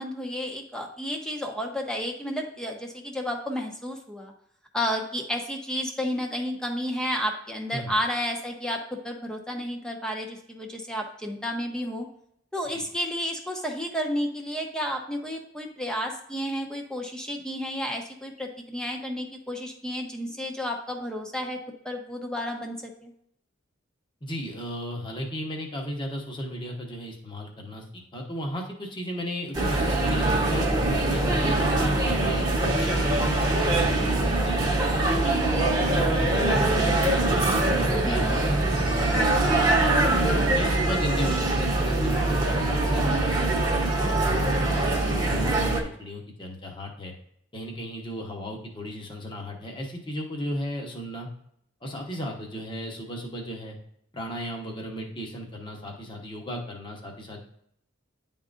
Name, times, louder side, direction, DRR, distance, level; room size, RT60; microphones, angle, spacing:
voice 1, 0.0-4.3 4.7-12.1 12.5-21.6 21.8-23.1 38.0-38.4 40.1-40.5, equal, 5° left, 1 dB, 0.9 m, -31 dB
voice 2, 24.2-30.7 31.1-35.2 35.8-40.1 40.5-47.1 47.5-51.3 51.8-53.8 54.1-57.4, equal, 25° left, 0 dB, 1.1 m, -36 dB
sound 1, 29.5-45.8, right 2 dB, 20° right, 1.1 m, -23 dB
10.0 x 3.7 x 2.6 m, 0.72 s
head